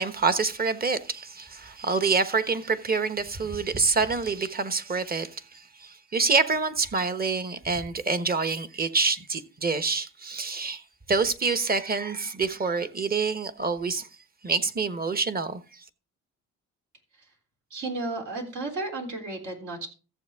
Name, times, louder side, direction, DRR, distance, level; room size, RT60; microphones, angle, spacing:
voice 1, 0.0-14.1 14.4-15.8, right 4 dB, 30° right, 1.2 m, -27 dB
voice 2, 17.7-19.9, right 2 dB, 75° right, 3.6 m, -33 dB
14.5 x 7.6 x 3.6 m
cardioid pair, 90°, 30 cm